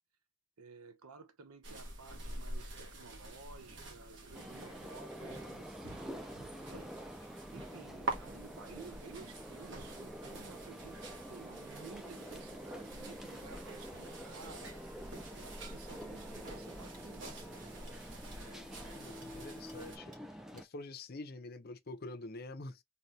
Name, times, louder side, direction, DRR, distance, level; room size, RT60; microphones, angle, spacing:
voice 1, 0.6-15.0 15.3-17.7, right 4 dB, 85° right, 0.6 m, -54 dB
sound 1, 1.6-20.0, right 2 dB, 55° right, 1.2 m, -47 dB
sound 2, 4.3-20.7, equal, ahead, 0.4 m, -48 dB
sound 3, 16.0-16.1 16.5-16.6 16.9-17.0 17.4-17.5 17.9-18.0 18.3-18.4 18.8-18.9 19.2-19.3 19.7-19.8 20.1-20.2 20.6-20.7, right 2 dB, 35° right, 1.7 m, -59 dB
voice 2, 18.9-20.1 20.5-22.8, left 2 dB, 45° left, 0.6 m, -46 dB
4.0 x 2.3 x 3.1 m
head